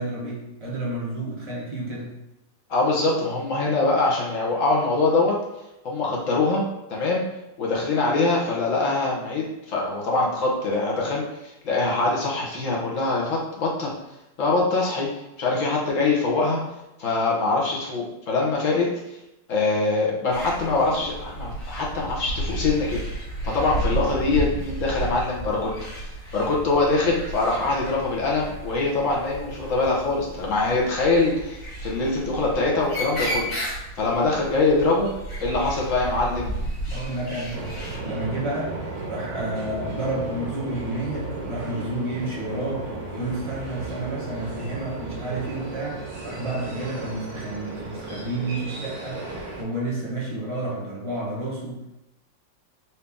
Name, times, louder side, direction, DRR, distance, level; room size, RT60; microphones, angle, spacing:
voice 1, 0.0-2.1 36.9-37.6 38.0-38.7 39.1-49.2 49.6-51.8, right 2 dB, 20° right, -6 dB, 0.9 m, -30 dB
voice 2, 2.7-5.3 5.8-6.6 6.9-7.2 7.6-13.9 14.4-15.1 15.4-16.6 17.0-18.9 19.5-23.0 23.4-25.7 26.0-35.1 35.4-36.5, left 3 dB, 50° left, -3 dB, 1.1 m, -23 dB
sound 1, 20.3-38.0, right 1 dB, 70° left, 2.2 m, -33 dB
sound 2, 37.5-49.6, right 2 dB, 75° right, 1.8 m, -35 dB
4.4 x 2.8 x 3.5 m, 0.91 s
omnidirectional pair, 2.0 m